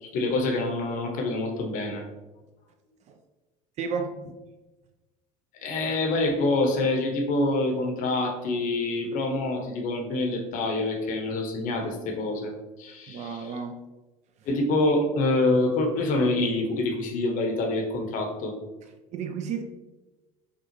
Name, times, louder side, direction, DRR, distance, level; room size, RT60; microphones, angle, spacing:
voice 1, 0.0-2.0 5.5-12.5 12.8-13.4 14.5-18.5, left 2 dB, 45° left, 2 dB, 0.8 m, -26 dB
voice 2, 3.8-4.2 13.1-13.8 14.4-14.5 18.8-19.6, right 6 dB, 40° right, 6 dB, 0.4 m, -33 dB
5.8 x 2.3 x 2.9 m, 1.1 s
figure-of-eight pair, 65°, 18 cm